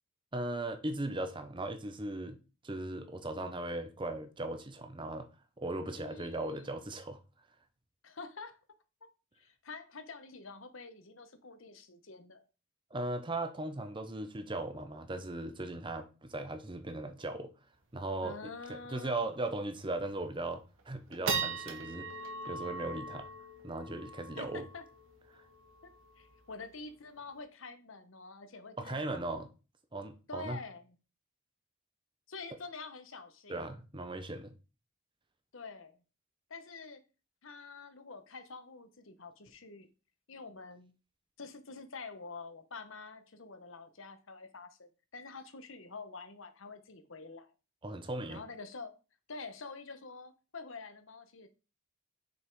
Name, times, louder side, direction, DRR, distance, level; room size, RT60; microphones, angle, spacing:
voice 1, 0.3-2.4 2.6-5.3 5.6-7.2 12.9-17.5 17.9-22.1 22.5-23.3 23.6-24.6 25.3-25.4 28.8-29.5 29.9-30.6 33.5-34.5 47.8-48.4, right 2 dB, 25° right, 0.7 m, -38 dB
voice 2, 5.8-6.8 8.0-8.6 9.4-12.4 18.2-19.3 24.4-24.8 26.2-29.2 30.3-30.9 32.3-33.6 35.5-36.0 36.5-37.0 37.4-39.9 40.3-40.9 41.4-47.5 48.3-48.9 49.3-51.5, left 4 dB, 65° left, 1.1 m, -47 dB
sound 1, 17.7-17.8 18.1-18.2 18.6-18.9 19.3-19.4 20.0-20.3 20.8-27.4, right 4 dB, 60° right, 1.5 m, -40 dB
6.6 x 5.4 x 4.6 m
head